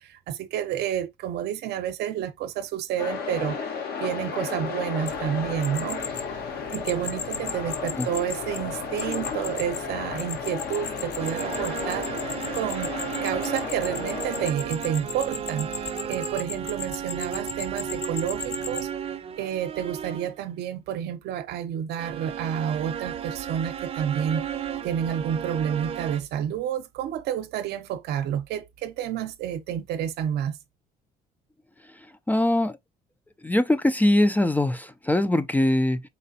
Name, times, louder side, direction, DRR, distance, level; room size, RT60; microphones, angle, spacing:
voice 1, 0.0-3.6 4.0-6.0 6.7-12.1 12.5-15.7 16.0-18.9 19.4-24.5 24.8-30.6, right 9 dB, 75° right, 0.7 m, -30 dB
sound 1, 3.0-14.5, left 5 dB, 70° left, 1.2 m, -33 dB
sound 2, 5.1-18.9, left 6 dB, 45° left, 0.7 m, -37 dB
sound 3, 11.2-20.4 22.0-26.2, right 8 dB, 35° right, 0.6 m, -34 dB
voice 2, 32.3-32.8 33.4-36.0, left 1 dB, 10° left, 0.3 m, -22 dB
4.4 x 3.3 x 2.6 m
cardioid pair, 110°, 17 cm